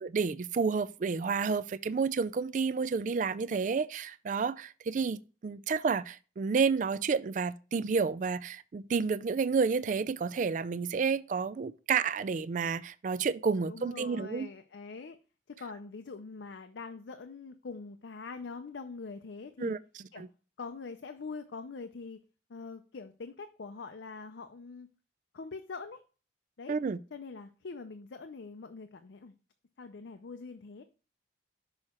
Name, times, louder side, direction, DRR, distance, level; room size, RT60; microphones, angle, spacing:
voice 1, 0.0-14.5 19.6-19.8 20.2-20.3 26.7-27.0, right 5 dB, 45° right, 0.3 m, -30 dB
voice 2, 13.6-15.2 15.5-19.8 20.1-20.2 20.6-22.2 22.5-24.9 25.3-26.0 26.6-26.8 27.1-29.3 29.8-30.8, left 4 dB, 75° left, 0.5 m, -43 dB
6.3 x 4.8 x 4.3 m
head